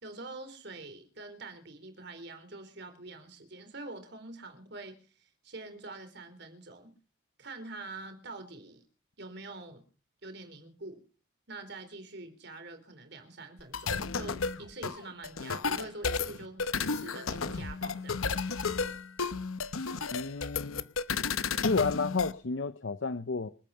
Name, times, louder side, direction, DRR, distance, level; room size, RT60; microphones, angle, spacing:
voice 1, 0.0-6.9 7.4-8.8 9.2-9.8 10.2-11.0 11.5-18.3, right 2 dB, 55° right, 3.7 m, -45 dB
sound 1, 13.6-22.3, left 5 dB, 85° left, 0.9 m, -33 dB
voice 2, 20.1-20.9 21.6-23.5, left 4 dB, 65° left, 0.7 m, -31 dB
26.5 x 9.0 x 5.7 m
head